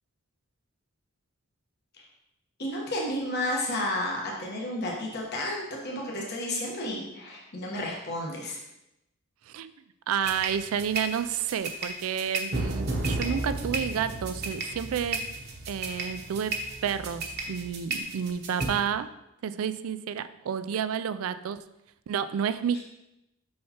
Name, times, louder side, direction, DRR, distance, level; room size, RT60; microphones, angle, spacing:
voice 1, 2.6-8.6, left 1 dB, 50° left, -2 dB, 1.1 m, -32 dB
voice 2, 10.1-15.2 15.7-16.5 16.8-19.1 19.4-21.6 22.1-22.8, right 8 dB, 80° right, 13 dB, 0.3 m, -30 dB
sound 1, 10.2-18.7, right 2 dB, 50° right, 0.9 m, -33 dB
6.3 x 5.7 x 2.9 m, 0.89 s
head